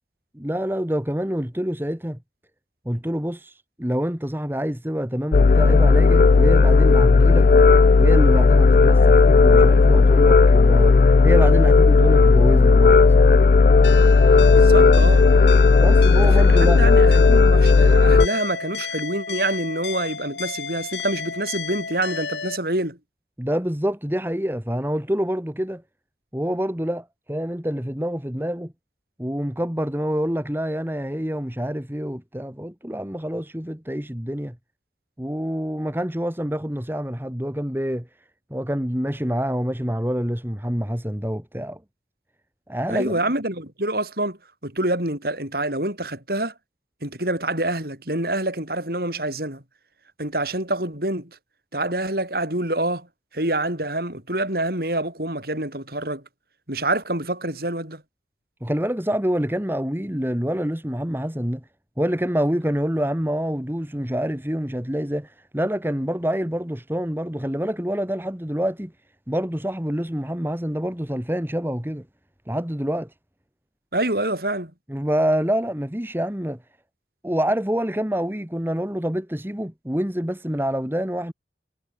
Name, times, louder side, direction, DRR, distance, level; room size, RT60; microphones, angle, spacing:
voice 1, 0.3-2.2 2.9-7.5 8.0-11.0 11.2-13.3 15.8-16.8 23.4-25.8 26.3-28.7 29.2-34.6 35.2-38.1 38.5-41.8 42.7-43.3 58.6-61.6 62.0-68.9 69.3-72.1 72.5-73.1 74.9-76.6 77.2-81.3, equal, 10° right, 1.8 m, -26 dB
sound 1, 5.3-18.3, left 4 dB, 45° left, 0.4 m, -14 dB
sound 2, 13.8-22.6, left 5 dB, 80° left, 2.7 m, -32 dB
voice 2, 14.5-15.3 16.3-23.0 42.9-46.5 47.0-49.6 50.2-51.3 51.7-53.1 53.3-56.2 56.7-58.0 73.9-74.7, right 1 dB, 55° right, 7.2 m, -26 dB
head